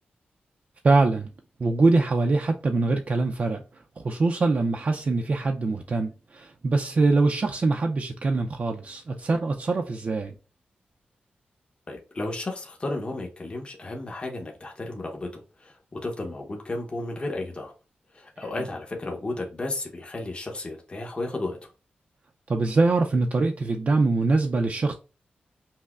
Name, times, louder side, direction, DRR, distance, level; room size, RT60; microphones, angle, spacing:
voice 1, 0.8-1.3 1.6-10.3 22.5-24.9, right 3 dB, 45° right, 0.4 m, -23 dB
voice 2, 11.9-17.7 18.1-21.7, left 2 dB, 30° left, 0.8 m, -33 dB
5.4 x 2.0 x 2.3 m
wide cardioid pair, 100°, 3 cm